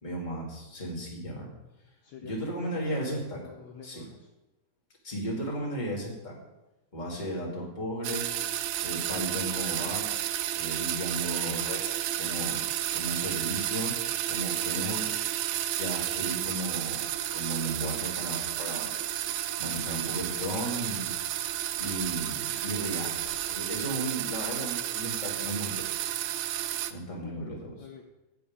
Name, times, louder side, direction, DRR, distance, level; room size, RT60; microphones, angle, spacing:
voice 1, 0.0-1.5 2.3-3.4 3.8-4.0 5.0-6.4 6.9-8.3 8.8-10.1 10.5-12.6 12.9-13.9 14.3-15.1 15.8-17.1 17.3-18.9 19.6-21.1 21.8-25.9 26.9-27.7, right 1 dB, 15° left, -2 dB, 2.5 m, -35 dB
voice 2, 2.0-4.3 27.2-28.0, left 6 dB, 70° left, 2 dB, 2.0 m, -47 dB
sound 1, 8.0-26.9, right 12 dB, 80° right, 1.7 m, -32 dB
12.5 x 5.2 x 8.9 m, 1.0 s
omnidirectional pair, 3.8 m